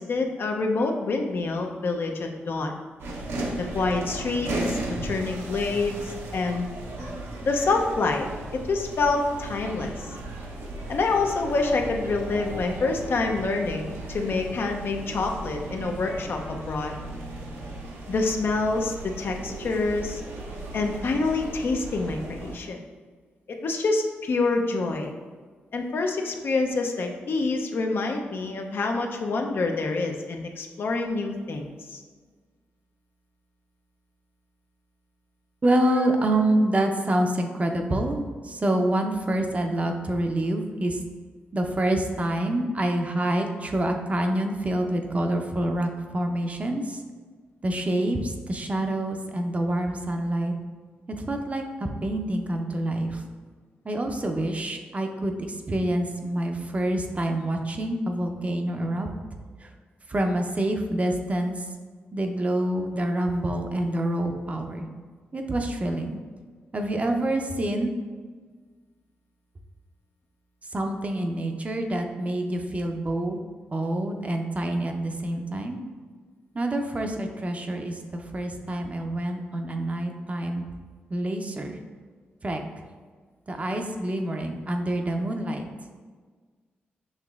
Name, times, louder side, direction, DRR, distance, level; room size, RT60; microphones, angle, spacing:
voice 1, 0.0-2.8 3.6-6.7 7.4-8.3 8.5-10.1 10.9-16.9 18.1-20.2 20.7-22.8 23.5-25.1 25.7-32.0, left 3 dB, 60° left, 3 dB, 0.5 m, -27 dB
sound 1, 3.0-22.6, right 1 dB, 80° right, 0.7 m, -36 dB
voice 2, 35.6-41.0 41.5-47.0 47.6-50.5 51.2-53.2 53.8-59.1 59.6-59.7 60.1-61.6 62.1-64.9 65.3-66.2 66.7-67.9 70.7-73.4 73.7-75.8 76.5-80.7 81.1-81.8 82.4-82.6 83.5-85.7, right 1 dB, 35° right, 4 dB, 0.6 m, -27 dB
6.4 x 2.9 x 2.4 m, 1.5 s
cardioid pair, 60°, 4 cm